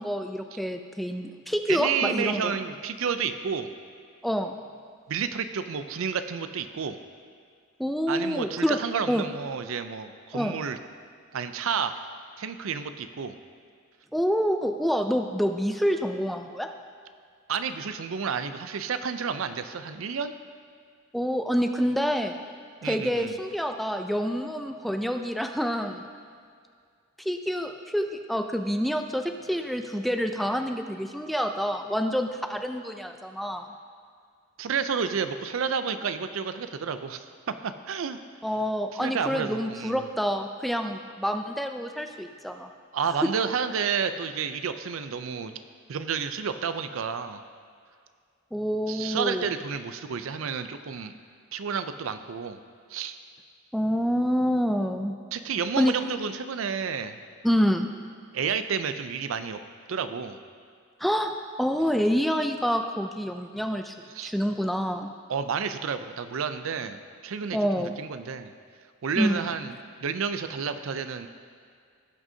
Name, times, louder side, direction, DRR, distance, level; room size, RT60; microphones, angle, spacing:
voice 1, 0.0-2.6 4.2-4.6 7.8-8.8 9.1-9.3 10.3-10.5 14.1-16.7 21.1-22.4 22.8-26.1 27.2-33.7 38.4-42.7 43.2-43.3 48.5-49.5 53.7-55.1 55.8-55.9 57.4-57.9 61.0-61.3 61.6-63.9 64.2-65.1 67.5-68.0 69.2-69.5, equal, ahead, 5 dB, 0.3 m, -27 dB
voice 2, 1.7-3.7 5.1-7.0 8.1-10.8 11.3-12.0 12.4-13.3 17.5-20.3 22.8-23.4 34.6-37.3 37.6-38.2 38.9-40.1 42.9-45.6 45.9-47.4 48.9-51.1 51.5-52.6 52.9-53.2 55.3-57.2 58.3-59.6 59.9-60.4 64.1-64.3 65.3-68.5 69.0-69.7 70.0-71.3, right 6 dB, 75° right, 10 dB, 0.5 m, -30 dB
17.0 x 6.2 x 2.8 m, 2.2 s
head